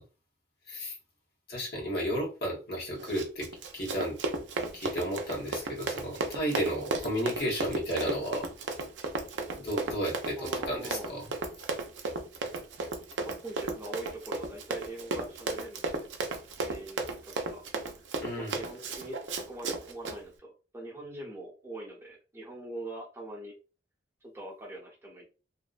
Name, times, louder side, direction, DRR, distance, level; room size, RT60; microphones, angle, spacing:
voice 1, 1.5-4.2 4.7-8.5 9.6-11.3 18.2-18.6, equal, 55° left, -3 dB, 0.9 m, -33 dB
Run, 3.0-20.2, right 3 dB, 80° right, 0.5 m, -34 dB
voice 2, 10.4-11.2 13.2-16.1 16.6-17.6 18.4-23.5 24.2-25.3, right 2 dB, 15° right, -3 dB, 0.8 m, -43 dB
2.6 x 2.1 x 2.4 m, 0.33 s
head